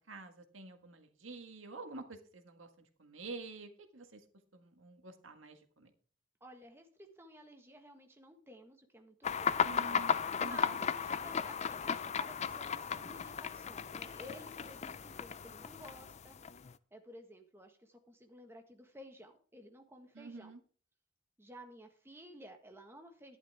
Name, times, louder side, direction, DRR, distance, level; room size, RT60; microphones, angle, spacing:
voice 1, 0.1-4.3 4.5-5.9 9.6-10.8 20.1-20.6, right 3 dB, 90° right, 6 dB, 1.7 m, -49 dB
voice 2, 6.4-9.6 10.4-16.4 16.9-20.5 21.4-23.4, equal, 10° right, 4 dB, 1.6 m, -54 dB
sound 1, 9.2-16.7, left 7 dB, 35° left, 0.4 m, -35 dB
12.0 x 10.5 x 3.6 m, 0.42 s
head